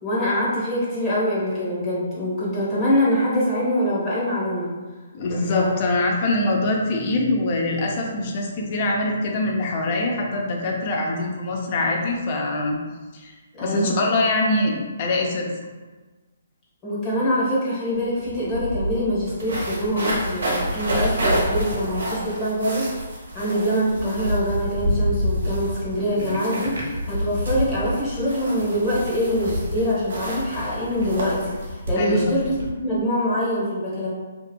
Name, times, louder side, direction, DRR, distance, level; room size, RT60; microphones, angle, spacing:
voice 1, 0.0-4.7 5.5-5.8 13.5-14.0 16.8-22.9 23.3-32.6 32.8-34.1, equal, 25° left, -8 dB, 0.9 m, -24 dB
voice 2, 5.1-12.8 13.1-13.3 13.6-15.5 32.0-32.2, left 2 dB, 40° left, 0 dB, 0.5 m, -23 dB
sound 1, 17.9-18.0 18.3-32.7, equal, 80° right, 0.9 m, -28 dB
2.8 x 2.3 x 2.2 m, 1.3 s
hypercardioid pair, 150°, 0 cm